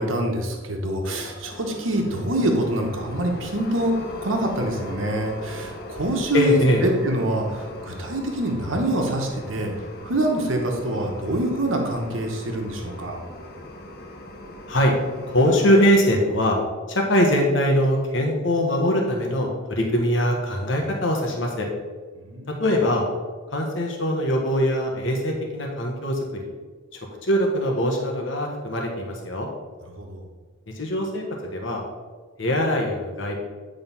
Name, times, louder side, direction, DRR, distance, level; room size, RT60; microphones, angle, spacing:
voice 1, 0.0-3.9 4.2-9.7 10.0-13.2 22.2-22.5 30.0-30.2, right 1 dB, 80° right, 1 dB, 1.2 m, -25 dB
sound 1, 1.0-16.0, left 1 dB, 50° left, 0.9 m, -39 dB
voice 2, 6.3-6.8 14.7-14.9 15.3-16.6 16.9-21.7 22.5-23.1 23.5-26.2 27.2-29.5 30.7-31.2 31.5-31.8 32.4-33.4, equal, 65° left, 1 dB, 1.3 m, -22 dB
9.3 x 3.8 x 5.6 m, 1.4 s
head